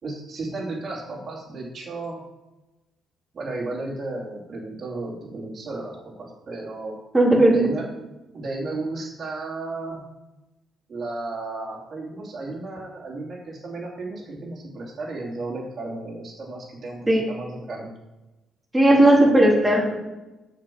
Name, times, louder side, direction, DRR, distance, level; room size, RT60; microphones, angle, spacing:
voice 1, 0.0-2.2 3.3-6.9 7.5-8.1 8.3-10.0 10.9-17.9 18.9-19.0 19.3-19.6, right 2 dB, 45° right, -5 dB, 2.7 m, -34 dB
voice 2, 7.1-7.7 17.1-17.2 18.7-20.0, right 1 dB, 15° right, -2 dB, 3.3 m, -16 dB
7.7 x 5.9 x 7.6 m, 1.0 s
cardioid pair, 90°, 0 cm